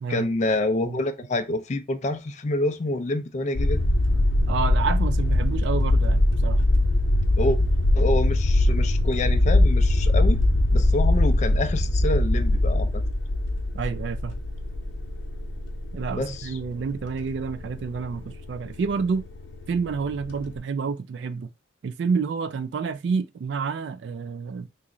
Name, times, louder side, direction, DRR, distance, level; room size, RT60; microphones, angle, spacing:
voice 1, 0.1-3.8 7.4-7.6 7.9-10.4 10.7-13.0 16.1-16.5, left 2 dB, 35° left, 0.4 m, -27 dB
sound 1, 3.6-20.6, left 1 dB, 75° left, 0.7 m, -22 dB
voice 2, 4.5-6.6 13.7-14.4 15.9-19.2 19.7-21.5 21.8-24.7, right 5 dB, 60° right, 0.3 m, -29 dB
3.0 x 2.4 x 3.6 m
head